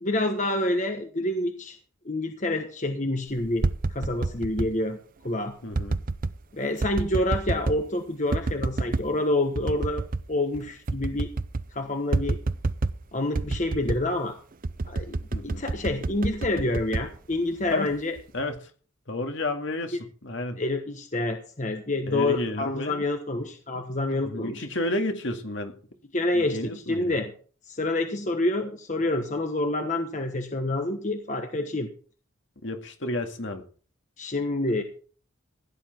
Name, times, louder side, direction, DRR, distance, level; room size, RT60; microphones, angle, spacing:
voice 1, 0.0-1.8 2.0-5.0 5.2-5.5 6.5-11.3 11.7-12.4 13.1-14.3 14.9-18.2 19.9-20.0 20.6-24.6 26.1-27.3 27.7-31.9 34.2-34.8, left 2 dB, 35° left, 5 dB, 1.3 m, -28 dB
sound 1, 3.4-4.7 5.7-6.4 6.8-7.9 8.3-9.1 9.5-10.3 10.5-10.6 10.9-11.7 12.1-13.0 13.3-14.1 14.6-17.7 18.2-18.6, right 3 dB, 40° right, 0.6 m, -28 dB
voice 2, 5.6-6.0 15.3-15.6 17.7-17.9 18.3-18.6 19.1-20.6 22.1-23.0 24.1-25.8 26.3-27.2 32.6-33.6, left 1 dB, 60° left, 5 dB, 2.1 m, -31 dB
16.0 x 10.5 x 4.5 m, 0.41 s
head